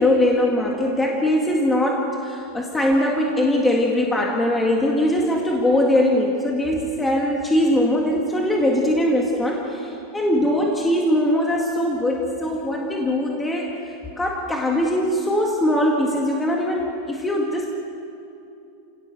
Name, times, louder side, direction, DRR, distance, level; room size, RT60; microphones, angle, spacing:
voice 1, 0.0-13.7 14.2-17.8, left 1 dB, 10° left, -1 dB, 1.8 m, -21 dB
29.5 x 18.0 x 6.7 m, 2.6 s
supercardioid pair, 165°, 0 cm